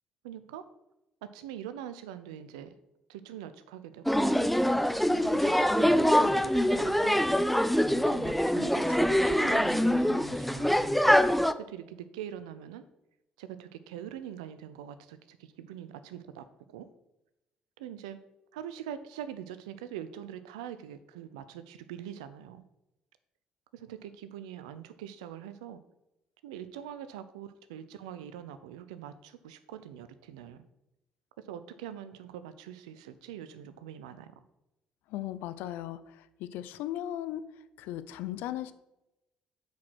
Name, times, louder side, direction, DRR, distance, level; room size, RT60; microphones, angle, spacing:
voice 1, 0.2-0.7 1.2-2.7 3.1-4.3 5.1-7.2 7.9-10.9 11.6-12.8 13.4-16.9 17.8-18.2 18.5-22.6 23.7-25.8 26.4-30.6 31.4-34.3, right 10 dB, 85° right, 12 dB, 0.5 m, -43 dB
sound 1, 4.1-11.5, equal, ahead, 0.5 m, -24 dB
voice 2, 35.1-36.0 36.4-37.4 37.8-38.7, left 13 dB, 75° left, 13 dB, 0.6 m, -36 dB
8.2 x 4.8 x 6.1 m, 0.91 s
hypercardioid pair, 55°, 3 cm